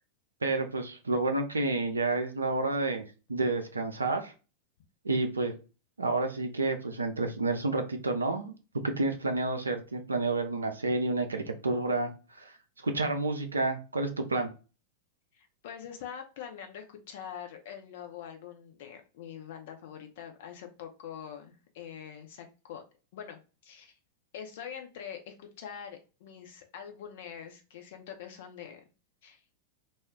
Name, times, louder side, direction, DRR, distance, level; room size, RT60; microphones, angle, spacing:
voice 1, 0.4-3.0 3.3-4.3 5.0-5.5 6.0-12.5 12.8-14.5, right 2 dB, 75° right, 5 dB, 0.4 m, -30 dB
voice 2, 15.3-22.8 23.1-23.9 24.3-28.8 29.2-29.6, left 8 dB, 55° left, 5 dB, 0.6 m, -44 dB
2.3 x 2.1 x 3.6 m, 0.33 s
figure-of-eight pair, 90°, 0 cm